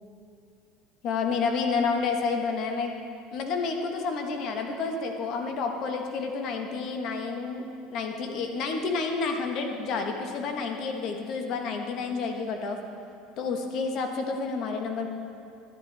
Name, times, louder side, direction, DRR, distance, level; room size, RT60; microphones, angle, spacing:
voice 1, 1.0-2.9 3.3-7.6 7.9-12.8 13.4-15.1, left 4 dB, 55° left, 4 dB, 1.3 m, -29 dB
12.0 x 11.0 x 3.4 m, 2.7 s
supercardioid pair, 90°, 0 cm